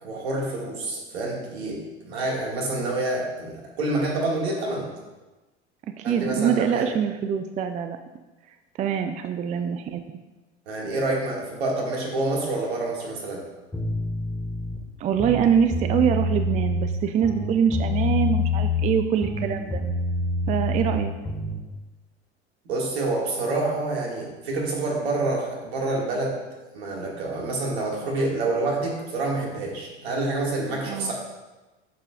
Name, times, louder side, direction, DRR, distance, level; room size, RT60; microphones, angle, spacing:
voice 1, 0.0-4.9 6.0-6.9 10.7-13.4 22.7-26.4 26.7-31.1, right 2 dB, 70° right, -2 dB, 2.1 m, -27 dB
voice 2, 6.0-8.0 8.8-10.2 15.0-19.8 20.5-21.1 30.8-31.1, right 8 dB, 20° right, 8 dB, 0.4 m, -24 dB
sound 1, 13.7-14.8 15.1-16.9 17.2-19.0 19.2-21.6, left 2 dB, 5° left, 1.5 m, -26 dB
9.0 x 6.7 x 2.5 m, 1.1 s
figure-of-eight pair, 80°, 33 cm